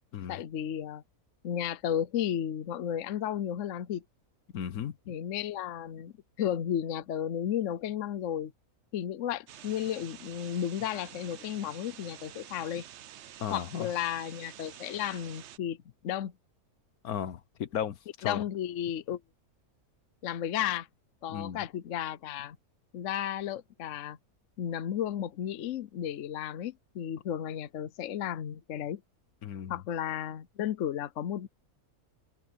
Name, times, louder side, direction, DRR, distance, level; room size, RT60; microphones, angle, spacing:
voice 1, 0.3-1.0 1.4-4.0 5.1-8.5 8.9-12.9 13.5-15.8 16.0-16.3 18.2-19.2 20.2-20.9 21.2-22.6 22.9-24.2 24.6-29.0 29.7-31.5, left 10 dB, 60° left, 1.0 m, -33 dB
voice 2, 4.5-5.0 13.4-13.9 17.0-18.4 21.3-21.6 29.4-29.8, left 9 dB, 75° left, 1.4 m, -35 dB
sound 1, 9.5-15.6, right 11 dB, 60° right, 0.8 m, -49 dB
omnidirectional pair, 1.6 m